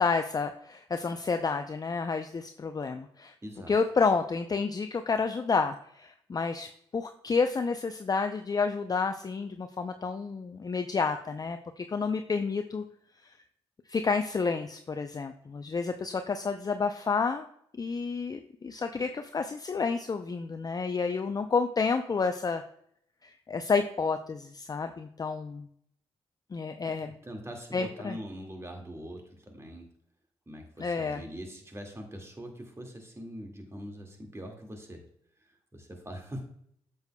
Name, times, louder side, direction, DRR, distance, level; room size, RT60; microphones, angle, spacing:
voice 1, 0.0-3.3 3.7-12.8 13.9-17.5 17.7-22.6 23.2-25.7 26.5-27.1 27.7-28.2 30.8-31.2, left 4 dB, 30° left, 7 dB, 0.5 m, -30 dB
voice 2, 3.4-3.8 26.8-29.9 30.5-35.0 35.4-36.4, equal, 25° right, 3 dB, 2.0 m, -43 dB
7.9 x 6.9 x 2.2 m, 0.68 s
supercardioid pair, 55°, 12 cm